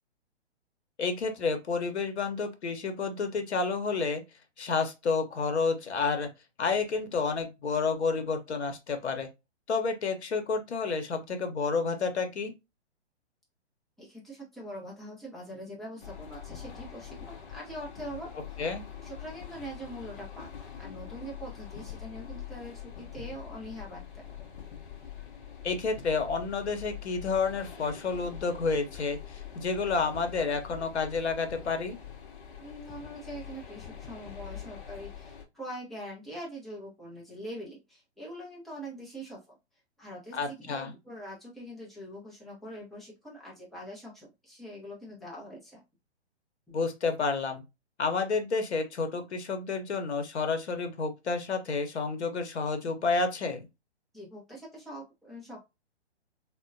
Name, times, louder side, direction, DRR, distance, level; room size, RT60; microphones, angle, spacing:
voice 1, 1.0-4.2 4.6-6.3 6.6-9.3 9.7-12.5 18.6-18.8 25.6-32.0 40.3-40.9 46.7-47.6 48.0-53.7, left 4 dB, 75° left, 0.9 m, -30 dB
voice 2, 14.0-18.6 19.0-24.5 32.6-39.6 40.0-45.8 54.1-55.6, equal, ahead, 0.5 m, -43 dB
sound 1, 16.0-35.4, left 9 dB, 45° left, 0.7 m, -44 dB
3.5 x 2.1 x 2.5 m
figure-of-eight pair, 125°, 34 cm